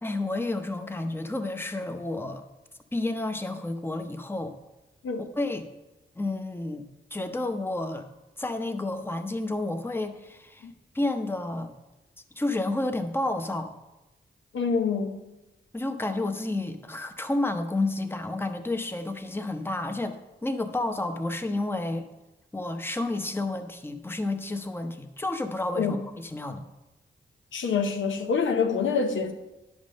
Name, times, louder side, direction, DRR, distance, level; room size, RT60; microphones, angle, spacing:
voice 1, 0.0-2.4 2.9-4.5 5.2-5.7 6.2-8.1 8.4-10.7 10.9-11.7 12.4-13.7 15.7-22.0 22.5-26.6, left 2 dB, 10° left, 7 dB, 0.8 m, -30 dB
voice 2, 14.5-15.2 25.8-26.0 27.5-29.3, left 5 dB, 85° left, 5 dB, 0.8 m, -26 dB
10.0 x 3.7 x 6.3 m, 1.0 s
cardioid pair, 55°, 20 cm